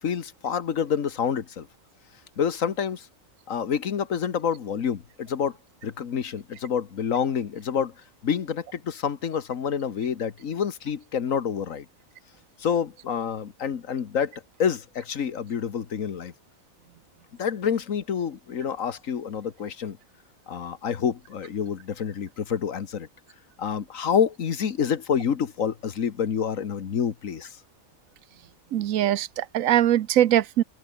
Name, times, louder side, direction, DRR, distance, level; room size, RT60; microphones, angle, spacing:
voice 1, 0.0-1.7 2.4-3.1 3.5-5.6 5.8-7.9 8.2-11.8 12.6-16.3 17.4-20.0 20.5-23.1 23.6-27.6, left 7 dB, 80° left, 1.7 m, -28 dB
voice 2, 28.7-30.6, right 12 dB, 90° right, 1.1 m, -21 dB
omnidirectional pair, 1.4 m